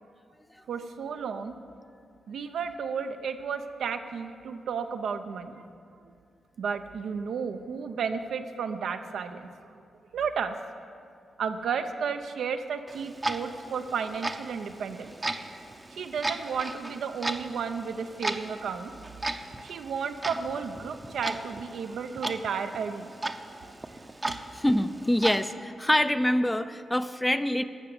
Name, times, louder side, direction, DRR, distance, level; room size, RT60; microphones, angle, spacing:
voice 1, 0.7-1.6 2.3-5.6 6.6-9.5 10.1-10.6 11.4-15.2 15.9-18.9 19.6-23.1 23.6-23.7, right 6 dB, 80° right, 7 dB, 0.6 m, -33 dB
Clock, 12.9-25.4, right 2 dB, 25° right, 0.7 m, -37 dB
voice 2, 24.5-27.6, left 1 dB, 10° left, 11 dB, 0.5 m, -25 dB
12.5 x 6.7 x 7.9 m, 2.4 s
cardioid pair, 55°, 0 cm